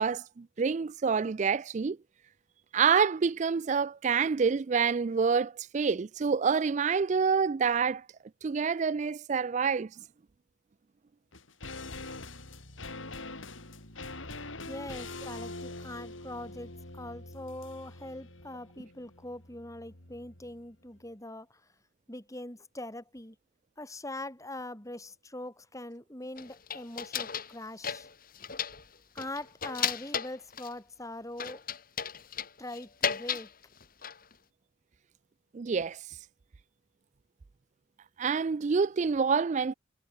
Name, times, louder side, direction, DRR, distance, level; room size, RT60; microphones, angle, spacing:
voice 1, 0.0-2.0 2.7-8.0 8.4-9.9 35.5-36.0 38.2-39.7, right 5 dB, 40° right, 0.4 m, -27 dB
sound 1, 11.3-20.7 21.0-21.1, left 2 dB, 90° left, 6.4 m, -44 dB
voice 2, 14.7-21.6 22.1-23.4 23.8-28.1 29.1-31.6 32.6-33.5, left 1 dB, 15° left, 3.8 m, -42 dB
sound 2, 26.4-27.6 27.8-28.8 29.2-30.7 31.4-33.5 33.8-34.3, left 8 dB, 50° left, 2.3 m, -34 dB
head